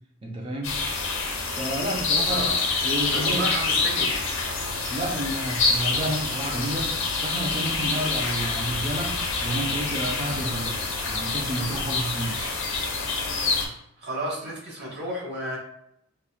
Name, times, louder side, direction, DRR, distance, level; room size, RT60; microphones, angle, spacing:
voice 1, 0.2-0.8 1.6-2.5 2.8-3.5 4.9-10.8 11.1-12.4, right 1 dB, 25° right, -1 dB, 0.5 m, -30 dB
sound 1, 0.6-13.7, left 4 dB, 70° left, 0.8 m, -27 dB
voice 2, 3.1-4.1 14.0-15.6, right 1 dB, 55° right, -4 dB, 1.4 m, -31 dB
5.3 x 2.3 x 2.4 m, 0.77 s
head